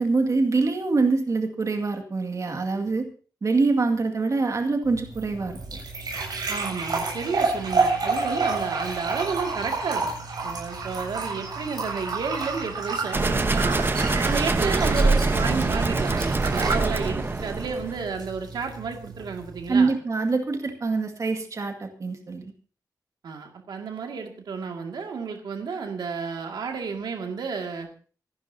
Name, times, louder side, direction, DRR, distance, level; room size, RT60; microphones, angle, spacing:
voice 1, 0.0-3.1 3.4-5.6 19.7-22.5, right 3 dB, 50° right, 4 dB, 2.1 m, -24 dB
sound 1, 4.8-19.8, right 4 dB, 70° right, 7.6 m, -30 dB
voice 2, 6.5-10.1 10.4-19.9 23.2-27.9, right 5 dB, 90° right, 3 dB, 2.2 m, -31 dB
sound 2, 13.1-18.0, right 3 dB, 30° right, 1.0 m, -24 dB
25.5 x 12.0 x 2.8 m, 0.38 s
wide cardioid pair, 90°, 7 cm